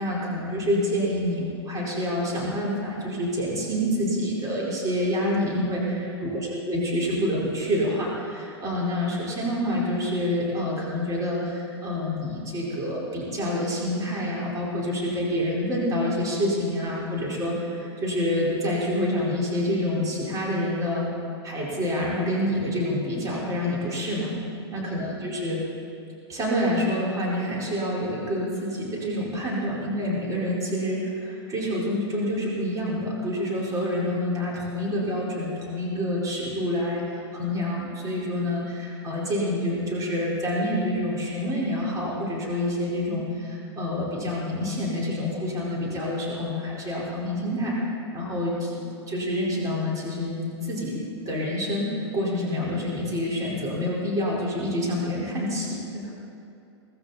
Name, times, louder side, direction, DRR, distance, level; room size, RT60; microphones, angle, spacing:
voice 1, 0.0-6.4 6.7-21.0 21.4-24.3 24.7-25.6 26.3-47.7 48.1-51.0 51.2-56.0, left 1 dB, 25° right, -4 dB, 4.4 m, -27 dB
18.0 x 15.5 x 4.2 m, 2.7 s
hypercardioid pair, 105°, 14 cm